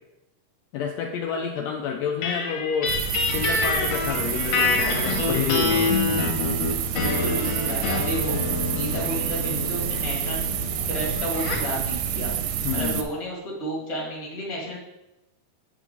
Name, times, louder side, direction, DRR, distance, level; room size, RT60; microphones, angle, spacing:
voice 1, 0.7-3.0 3.3-5.9 12.6-13.1, left 7 dB, 85° left, 2 dB, 1.5 m, -29 dB
sound 1, 2.2-11.7, left 4 dB, 65° left, 1.9 m, -27 dB
sound 2, 2.9-13.0, right 8 dB, 80° right, 1.9 m, -28 dB
voice 2, 7.0-8.4 8.7-10.4 10.9-12.3 12.7-14.8, equal, 25° left, -3 dB, 1.8 m, -32 dB
8.3 x 3.6 x 5.1 m, 0.95 s
omnidirectional pair, 3.6 m